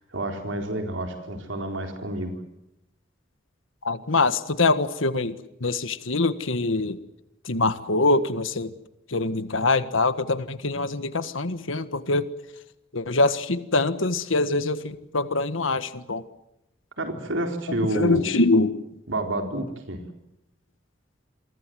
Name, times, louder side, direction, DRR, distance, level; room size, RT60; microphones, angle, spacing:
voice 1, 0.0-2.4 17.0-18.2 19.1-20.0, right 1 dB, 75° right, 4 dB, 4.1 m, -29 dB
voice 2, 3.8-7.0 7.4-8.7 9.1-12.3 12.9-16.2 17.7-18.8, left 3 dB, 90° left, 12 dB, 1.6 m, -24 dB
28.5 x 23.5 x 7.8 m, 0.86 s
head